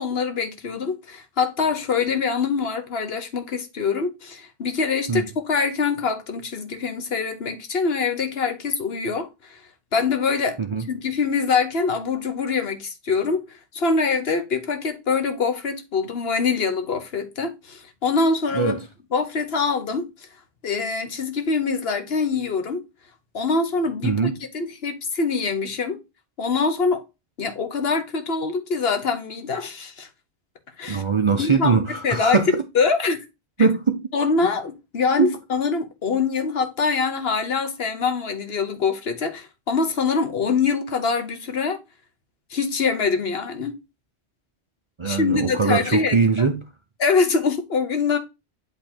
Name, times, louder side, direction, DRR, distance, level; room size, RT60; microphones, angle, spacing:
voice 1, 0.0-9.6 9.9-10.6 10.9-18.8 19.1-20.0 20.6-22.8 23.3-26.0 26.4-27.0 27.4-30.1 30.8-31.0 31.4-32.4 32.7-33.2 33.6-33.7 34.1-41.8 42.5-43.8 45.0-46.2 47.0-48.2, left 4 dB, 65° left, 1.3 m, -24 dB
voice 2, 24.0-24.3 30.9-32.5 33.6-34.0 35.2-35.3 45.0-46.6, right 5 dB, 35° right, 0.5 m, -21 dB
8.2 x 3.2 x 4.3 m
omnidirectional pair, 1.1 m